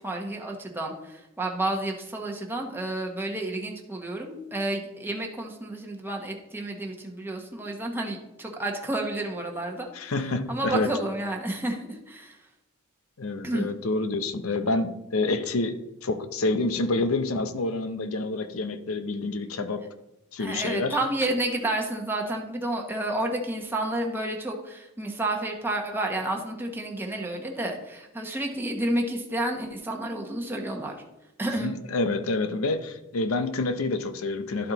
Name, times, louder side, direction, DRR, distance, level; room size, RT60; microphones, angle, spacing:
voice 1, 0.0-10.1 10.5-12.4 13.4-13.7 20.4-31.0 31.4-31.7, right 1 dB, 10° right, 1 dB, 1.1 m, -30 dB
voice 2, 9.9-10.9 13.2-19.8 20.3-21.0 31.6-34.7, left 2 dB, 70° left, 10 dB, 0.7 m, -28 dB
12.0 x 4.4 x 3.9 m, 0.93 s
head